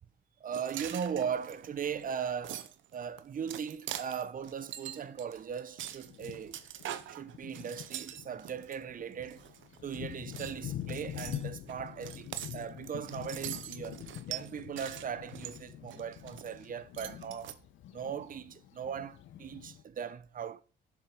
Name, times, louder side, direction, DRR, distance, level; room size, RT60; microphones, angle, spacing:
voice 1, 0.4-2.6 2.9-6.6 7.1-9.5 9.8-14.0 14.3-17.6 17.9-20.6, right 7 dB, 45° right, 0.8 m, -38 dB
sound 1, 0.5-8.8 9.2-10.0 10.3-16.6 16.9-17.5, right 11 dB, 75° right, 0.8 m, -44 dB
Thunder, 3.8-4.0 4.9-5.0 5.6-5.7 6.1-19.8, left 12 dB, 75° left, 0.9 m, -45 dB
7.4 x 7.1 x 5.2 m
cardioid pair, 90°, 20 cm